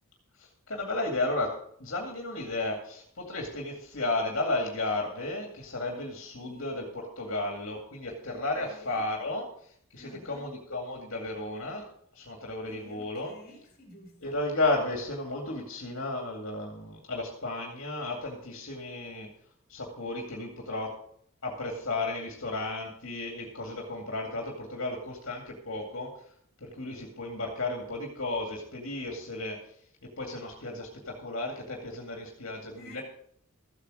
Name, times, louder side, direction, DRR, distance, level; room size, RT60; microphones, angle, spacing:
voice 1, 0.4-6.9 7.2-13.3 14.2-19.3 19.7-21.0 21.4-26.1 26.6-29.6 30.0-33.0, left 2 dB, 65° left, 0 dB, 2.3 m, -33 dB
voice 2, 6.3-6.7 8.3-9.0 10.0-10.5 12.7-14.4 32.7-33.0, equal, 45° left, 1 dB, 3.3 m, -51 dB
14.5 x 8.4 x 5.0 m, 0.64 s
head